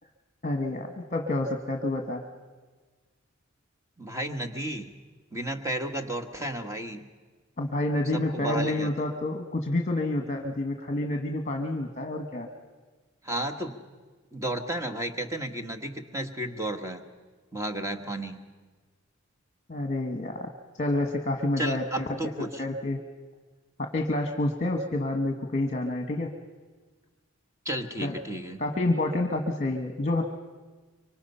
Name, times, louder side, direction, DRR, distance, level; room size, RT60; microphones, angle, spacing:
voice 1, 0.4-2.3 7.6-12.5 19.7-20.5 20.8-22.2 22.6-23.0 23.8-26.3 28.0-28.1 28.6-30.2, left 2 dB, 35° left, 4 dB, 1.3 m, -28 dB
voice 2, 4.0-4.9 5.3-7.1 8.1-8.9 13.2-13.8 14.3-17.0 17.5-18.4 21.6-22.6 27.6-28.6, right 1 dB, 15° right, 5 dB, 1.3 m, -33 dB
25.0 x 24.5 x 5.6 m, 1.4 s
head